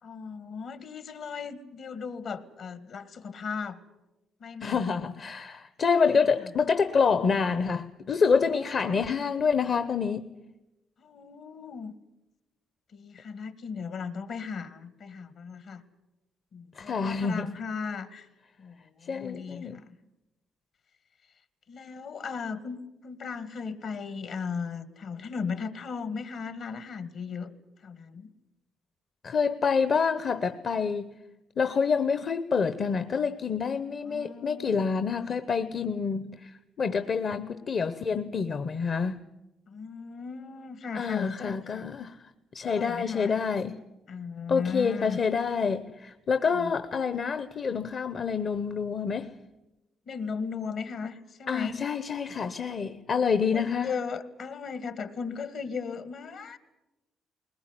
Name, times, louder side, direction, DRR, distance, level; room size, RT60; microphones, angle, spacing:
voice 1, 0.0-3.8 4.4-4.8 6.1-6.3 8.5-9.0 11.0-11.9 12.9-15.8 16.5-18.3 18.6-19.8 21.7-27.5 27.8-28.3 34.0-35.1 39.7-41.9 42.6-43.4 44.1-45.2 46.5-46.7 50.0-51.8 53.5-56.6, left 5 dB, 65° left, 1.8 m, -37 dB
voice 2, 4.6-10.3 16.7-17.5 19.0-19.8 29.2-31.1 31.6-39.2 40.9-42.2 42.5-43.8 44.5-49.3 51.5-53.9, left 5 dB, 50° left, 0.9 m, -27 dB
21.0 x 19.5 x 9.8 m
cardioid pair, 90°, 0 cm